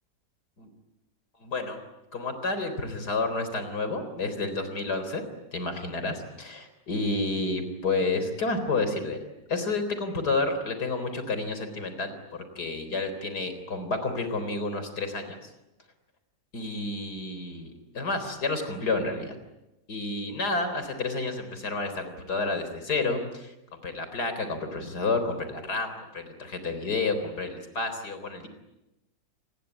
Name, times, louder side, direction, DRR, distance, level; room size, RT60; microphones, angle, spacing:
voice 1, 1.4-1.8 2.1-5.2 5.5-9.2 9.5-15.4 16.5-19.3 19.9-23.5 23.8-28.5, left 3 dB, 65° left, 9 dB, 4.5 m, -30 dB
28.0 x 21.0 x 9.9 m, 0.96 s
omnidirectional pair, 1.8 m